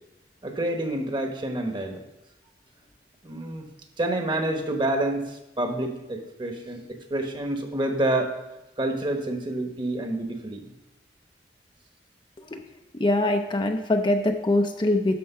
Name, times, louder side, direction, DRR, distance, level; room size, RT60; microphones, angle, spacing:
voice 1, 0.4-2.0 3.2-3.7 4.0-6.8 7.1-8.4 8.8-10.6, right 1 dB, 25° right, 4 dB, 1.1 m, -28 dB
voice 2, 13.0-15.1, left 1 dB, 25° left, 5 dB, 0.5 m, -23 dB
12.0 x 4.5 x 5.6 m, 0.95 s
head